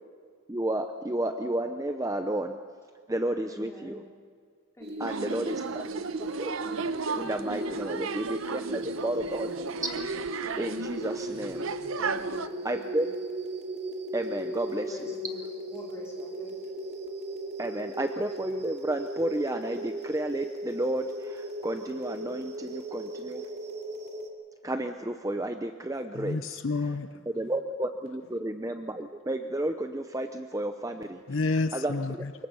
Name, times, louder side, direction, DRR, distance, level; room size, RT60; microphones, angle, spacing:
voice 1, 0.5-2.6 3.1-4.0 5.0-5.6 6.4-6.5 7.1-8.6 9.0-9.5 10.6-11.8 12.6-13.1 14.1-15.0 17.6-23.5 24.6-26.6 27.3-31.2 31.7-31.9, right 1 dB, 15° right, 7 dB, 0.6 m, -31 dB
voice 2, 3.5-4.0 4.8-6.3 7.7-8.2 8.6-9.1 12.0-13.1 14.6-15.4 15.7-16.7, equal, 15° left, -4 dB, 4.5 m, -46 dB
sound 1, 4.8-24.3, right 1 dB, 50° right, 2.3 m, -37 dB
sound 2, 5.0-12.5, right 4 dB, 75° right, 0.8 m, -35 dB
voice 3, 26.1-27.3 31.3-32.3, left 3 dB, 65° left, 11 dB, 0.7 m, -30 dB
25.0 x 22.0 x 5.5 m, 2.1 s
head